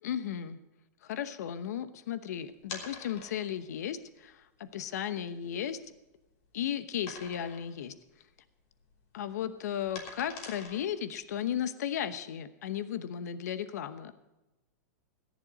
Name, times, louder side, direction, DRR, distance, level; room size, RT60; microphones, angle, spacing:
voice 1, 0.0-0.6 1.0-5.8 6.5-7.9 9.1-14.1, left 9 dB, 75° left, 12 dB, 1.0 m, -35 dB
sound 1, 2.6-3.6 4.3-4.4 4.9-5.0 5.4-6.4 7.1-7.8 8.1-8.3 8.6-11.2, left 4 dB, 50° left, 3.3 m, -45 dB
14.5 x 10.5 x 6.3 m, 1.0 s
hypercardioid pair, 130°, 9 cm